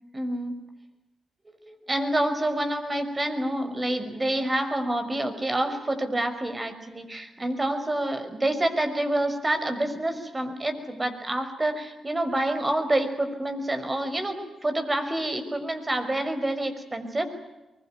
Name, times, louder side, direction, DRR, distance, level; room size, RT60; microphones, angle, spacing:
voice 1, 0.1-0.6 1.7-17.2, right 1 dB, 25° right, 8 dB, 5.8 m, -27 dB
23.5 x 22.0 x 9.4 m, 1.0 s
supercardioid pair, 50°, 0 cm